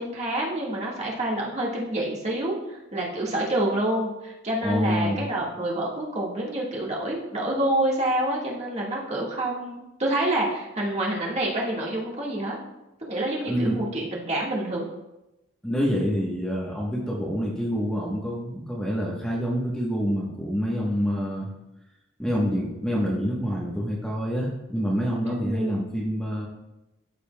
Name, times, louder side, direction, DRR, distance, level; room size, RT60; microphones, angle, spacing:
voice 1, 0.0-12.6 13.1-14.9 25.2-25.8, right 1 dB, 35° right, -4 dB, 1.6 m, -27 dB
voice 2, 4.6-5.3 13.5-13.8 15.6-21.5 22.2-26.5, equal, 5° left, -4 dB, 1.0 m, -27 dB
13.5 x 5.2 x 2.2 m, 0.95 s
head